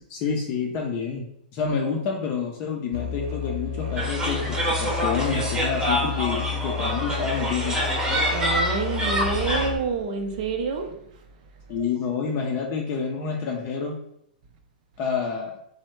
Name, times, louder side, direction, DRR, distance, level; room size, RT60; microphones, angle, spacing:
voice 1, 0.1-1.3 1.5-4.6 4.8-7.8 11.7-14.0 15.0-15.5, left 6 dB, 40° left, 0.4 m, -28 dB
Musical instrument, 2.9-9.8, left 7 dB, 70° right, 0.9 m, -31 dB
sound 1, 4.0-9.7, equal, 15° right, 0.8 m, -26 dB
voice 2, 8.3-11.0, right 5 dB, 55° right, 0.5 m, -27 dB
3.0 x 2.1 x 3.1 m
hypercardioid pair, 115°, 5 cm